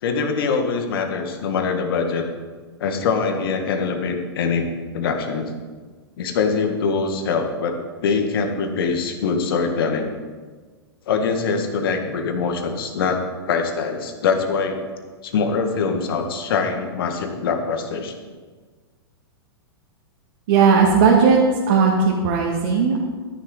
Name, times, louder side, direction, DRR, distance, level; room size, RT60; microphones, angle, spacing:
voice 1, 0.0-2.2 2.8-4.6 4.9-5.5 6.2-10.1 11.1-14.8 15.2-18.1, left 5 dB, 60° left, 4 dB, 1.9 m, -23 dB
voice 2, 20.5-21.4 21.7-23.0, right 5 dB, 55° right, -2 dB, 2.2 m, -16 dB
14.0 x 10.5 x 4.1 m, 1.4 s
hypercardioid pair, 110°, 13 cm